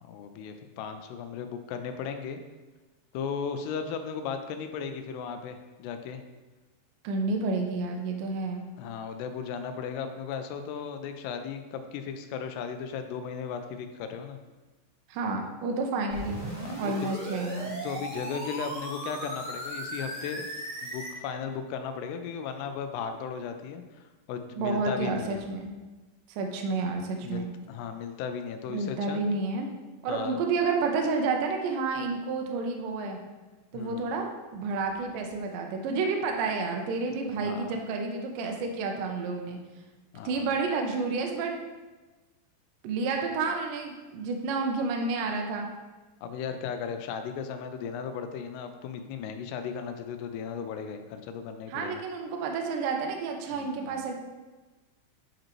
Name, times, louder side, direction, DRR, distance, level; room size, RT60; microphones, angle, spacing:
voice 1, 0.0-2.4 3.1-6.2 8.8-14.4 16.6-17.2 17.8-20.5 20.8-25.4 27.2-29.2 30.1-30.4 33.7-34.1 37.4-37.7 40.1-40.5 46.2-52.0 53.5-54.1, left 6 dB, 85° left, 7 dB, 2.6 m, -36 dB
voice 2, 7.0-8.6 15.1-16.4 16.8-17.8 24.6-25.7 26.3-27.5 28.7-29.7 30.0-33.2 33.7-39.6 40.2-41.6 42.8-45.7 51.7-54.2, right 4 dB, 80° right, 2 dB, 1.9 m, -30 dB
sound 1, 16.1-21.1, right 1 dB, 40° right, 0.4 m, -37 dB
8.7 x 5.0 x 3.0 m, 1.2 s
omnidirectional pair, 4.7 m